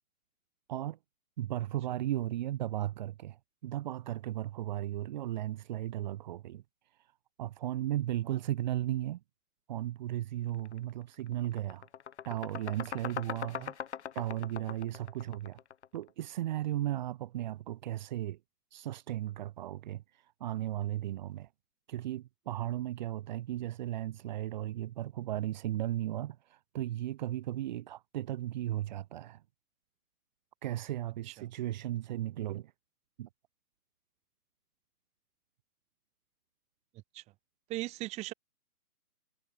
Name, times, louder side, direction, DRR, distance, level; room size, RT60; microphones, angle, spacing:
voice 1, 1.4-3.4 3.6-6.6 7.4-9.2 9.7-11.8 12.3-13.6 14.1-15.6 15.9-18.4 18.7-20.0 20.4-21.5 21.9-29.4 30.6-32.7 33.2-33.3, right 13 dB, 30° right, 4.3 m, -35 dB
sound 1, 10.6-10.8 11.1-16.1, left 8 dB, 45° left, 7.2 m, -41 dB
voice 2, 37.7-38.3, right 18 dB, 15° right, 4.7 m, -39 dB
hypercardioid pair, 165°, 46 cm